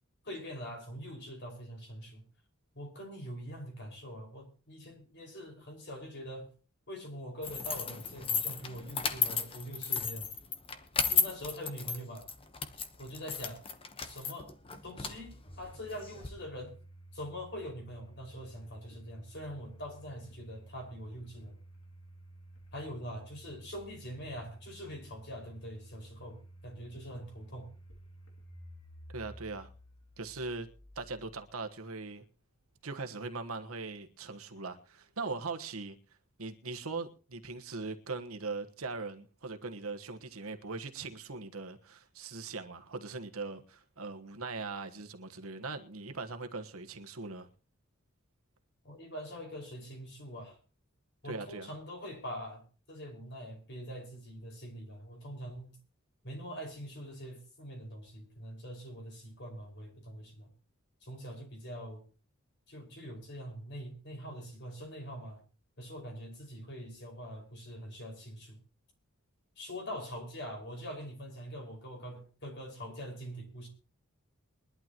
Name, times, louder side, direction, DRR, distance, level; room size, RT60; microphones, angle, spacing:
voice 1, 0.2-2.2 2.7-6.5 6.9-10.3 11.1-12.3 13.0-13.6 14.0-14.5 14.8-16.7 17.1-21.6 22.7-27.7 48.8-50.6 51.2-55.8 56.2-60.5 61.0-62.1 62.7-65.4 65.8-68.6 69.6-73.7, equal, 55° left, 5.3 m, -44 dB
sound 1, 7.4-16.3, left 6 dB, 25° left, 1.1 m, -34 dB
Domestic sounds home sounds, 15.5-32.4, right 1 dB, 80° left, 2.5 m, -53 dB
voice 2, 29.1-29.7 30.2-30.7 31.0-32.2 32.8-36.0 36.4-47.5 51.2-51.7, right 3 dB, 80° right, 1.4 m, -40 dB
22.0 x 11.5 x 3.0 m
head